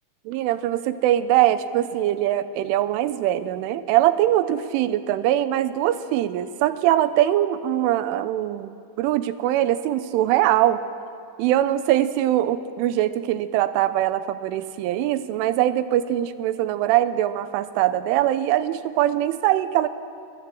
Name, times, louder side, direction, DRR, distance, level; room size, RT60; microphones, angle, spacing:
voice 1, 0.3-10.8 11.4-19.9, right 13 dB, 85° right, 12 dB, 3.3 m, -22 dB
27.5 x 20.5 x 7.7 m, 2.4 s
omnidirectional pair, 5.6 m